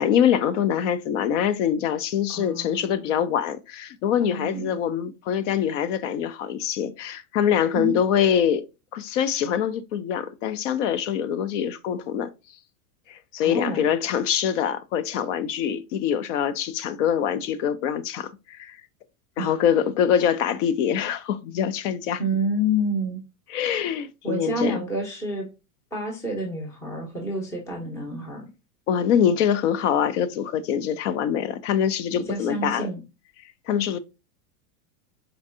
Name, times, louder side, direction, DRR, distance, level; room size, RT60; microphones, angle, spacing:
voice 1, 0.0-8.7 8.9-12.3 13.1-18.8 19.4-22.2 23.5-24.8 28.9-32.9 33.7-34.0, left 9 dB, 55° left, 0.6 m, -24 dB
voice 2, 2.3-3.2 4.2-4.8 7.7-7.9 13.4-13.9 19.4-19.5 22.2-23.2 24.2-25.5 25.9-28.5 32.2-33.0, equal, 5° left, 0.6 m, -29 dB
4.5 x 2.6 x 2.5 m
supercardioid pair, 155°, 44 cm